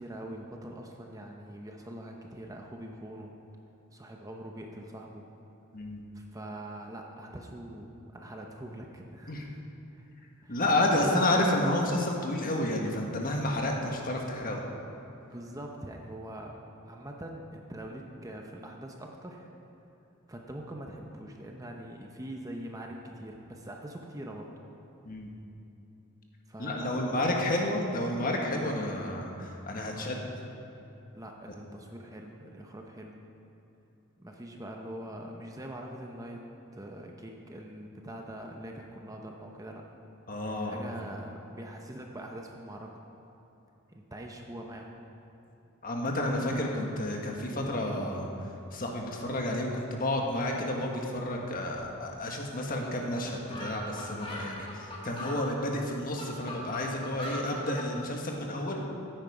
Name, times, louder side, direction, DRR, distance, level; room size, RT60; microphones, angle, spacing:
voice 1, 0.0-3.3 3.9-5.3 6.1-9.6 9.9-10.0 10.4-10.6 10.9-11.3 15.2-16.6 16.9-19.5 20.3-24.5 26.5-27.5 29.9-30.3 31.2-33.2 34.2-36.4 36.7-39.8 40.6-43.0 43.9-44.9, right 1 dB, 15° right, 1 dB, 0.8 m, -43 dB
voice 2, 10.5-14.6 25.0-25.3 26.6-30.2 40.3-40.8 45.8-58.8, left 1 dB, 40° left, 0 dB, 1.5 m, -30 dB
sound 1, 52.8-52.9 53.2-53.3 53.5-55.4 55.9-57.9, equal, 25° left, 2.0 m, -39 dB
15.0 x 9.2 x 5.0 m, 2.9 s
head